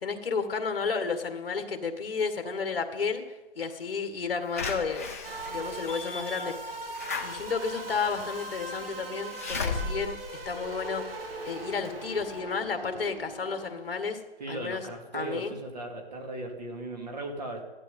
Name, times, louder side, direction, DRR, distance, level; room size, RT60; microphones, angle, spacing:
voice 1, 0.0-3.2 3.6-5.1 5.5-6.6 7.2-11.0 11.5-14.2 14.5-14.9 15.1-15.5, left 5 dB, 60° left, 7 dB, 1.9 m, -32 dB
Slam / Alarm, 4.6-11.4 11.8-11.9 12.2-12.3, left 4 dB, 15° left, 0.7 m, -36 dB
sound 1, 5.2-14.0, right 2 dB, 60° right, 2.8 m, -40 dB
voice 2, 14.4-17.6, right 2 dB, 40° right, 2 dB, 2.5 m, -37 dB
15.5 x 12.0 x 5.4 m, 1.2 s
hypercardioid pair, 180°, 32 cm